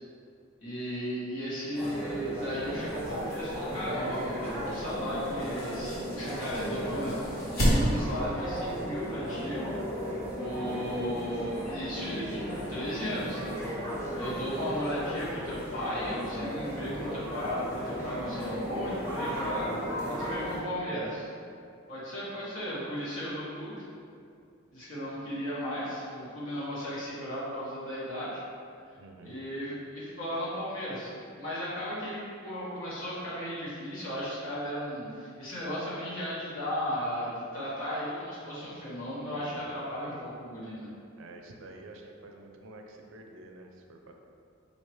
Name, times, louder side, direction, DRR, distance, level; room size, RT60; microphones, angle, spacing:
voice 1, 0.6-9.7 10.3-13.5 14.1-21.3 21.9-23.8 24.7-28.4 29.2-40.9, equal, 75° left, -9 dB, 1.4 m, -35 dB
sound 1, 1.7-20.6, equal, 15° left, 1.1 m, -35 dB
sound 2, 2.7-8.3, equal, 50° left, 1.3 m, -33 dB
voice 2, 29.0-29.3 39.3-39.7 40.0-40.3 41.2-44.1, right 2 dB, 65° right, 3 dB, 0.4 m, -49 dB
4.4 x 2.8 x 3.1 m, 2.4 s
head